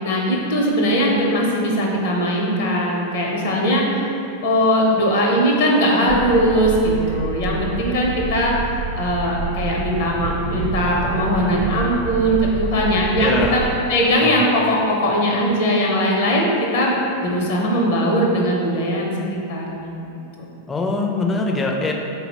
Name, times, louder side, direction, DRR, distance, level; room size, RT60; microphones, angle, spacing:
voice 1, 0.0-3.9 4.4-8.5 9.0-13.6 13.9-17.0 17.2-19.9 20.4-20.5, equal, 65° left, -2 dB, 0.7 m, -20 dB
sound 1, 6.1-13.7, right 3 dB, 50° right, 0.7 m, -28 dB
voice 2, 13.2-13.7 14.2-14.4 20.7-21.9, left 3 dB, 20° left, 1 dB, 0.4 m, -23 dB
4.1 x 2.0 x 4.0 m, 2.7 s
hypercardioid pair, 95°, 0 cm